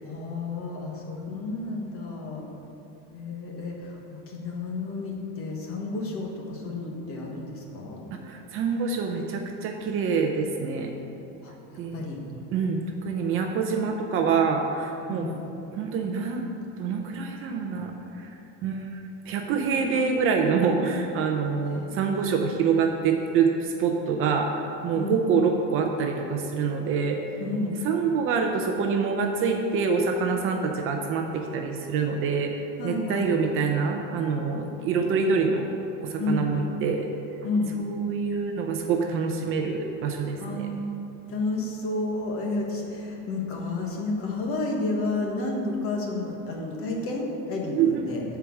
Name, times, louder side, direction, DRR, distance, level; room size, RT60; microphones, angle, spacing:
voice 1, 0.0-2.5 3.1-8.0 11.4-11.5 11.9-12.2 15.1-15.3 21.6-21.8 24.9-25.2 27.4-27.8 32.8-33.3 36.2-36.5 37.4-37.7 40.4-40.9 41.3-48.2, left 2 dB, 40° left, -1 dB, 1.5 m, -31 dB
voice 2, 8.2-10.9 11.8-12.0 12.5-15.3 15.7-16.5 16.8-18.3 18.6-27.2 27.8-35.7 36.0-37.1 37.8-40.7 47.8-48.1, right 5 dB, 35° right, 3 dB, 0.6 m, -26 dB
9.9 x 4.7 x 7.1 m, 3.0 s
cardioid pair, 170°, 36 cm